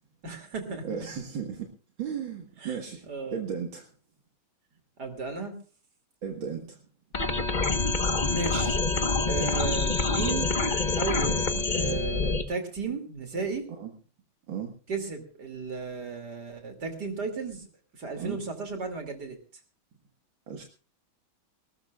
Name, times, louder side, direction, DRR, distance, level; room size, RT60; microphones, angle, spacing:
voice 1, 0.2-1.0 2.6-2.8 3.1-3.4 5.0-5.5 8.3-8.8 9.3-10.5 11.0-13.6 14.9-17.7 17.9-19.4, right 4 dB, 55° right, 6 dB, 3.3 m, -34 dB
voice 2, 0.8-1.7 2.0-3.9 6.2-6.8 11.5-11.6 13.8-13.9 14.5-14.7 18.2-18.4 20.5-20.6, right 7 dB, 70° right, 2 dB, 2.5 m, -35 dB
sound 1, 7.1-12.4, left 3 dB, 30° left, 1.1 m, -26 dB
20.0 x 19.5 x 2.4 m, 0.36 s
omnidirectional pair, 2.2 m